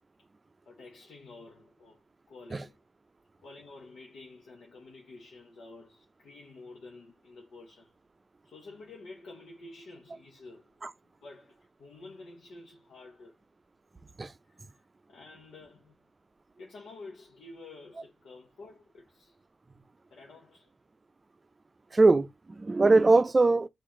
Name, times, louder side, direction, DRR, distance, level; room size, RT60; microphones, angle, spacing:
voice 1, 0.7-2.0 2.3-2.8 3.4-8.0 8.4-10.7 11.2-13.4 14.4-16.0 16.6-19.4 20.1-20.7, left 3 dB, 85° left, 0.9 m, -50 dB
voice 2, 21.9-23.7, right 3 dB, 35° right, 0.4 m, -22 dB
4.2 x 2.5 x 3.7 m
cardioid pair, 55°, 0 cm